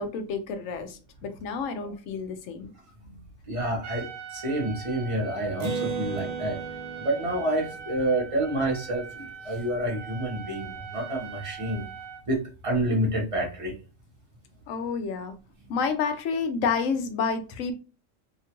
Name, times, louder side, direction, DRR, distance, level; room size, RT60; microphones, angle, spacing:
voice 1, 0.0-2.7 14.7-15.3 15.7-17.7, left 5 dB, 80° left, 8 dB, 0.9 m, -29 dB
voice 2, 3.5-6.6 7.0-11.8 12.3-13.7, right 1 dB, 30° right, -2 dB, 0.8 m, -28 dB
Trumpet, 3.8-12.2, right 7 dB, 85° right, 1.0 m, -42 dB
Acoustic guitar, 5.6-9.3, right 4 dB, 55° right, 0.4 m, -36 dB
2.8 x 2.3 x 2.9 m, 0.34 s
omnidirectional pair, 1.3 m